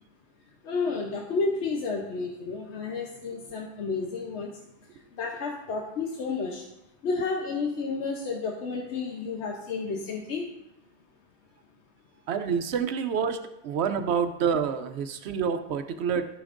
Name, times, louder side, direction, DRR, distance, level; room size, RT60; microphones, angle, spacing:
voice 1, 0.6-4.5 5.2-6.6 7.0-10.4, left 4 dB, 90° left, 1 dB, 1.1 m, -31 dB
voice 2, 12.3-16.3, right 6 dB, 80° right, 8 dB, 0.9 m, -28 dB
15.0 x 5.8 x 2.5 m, 0.90 s
omnidirectional pair, 1.1 m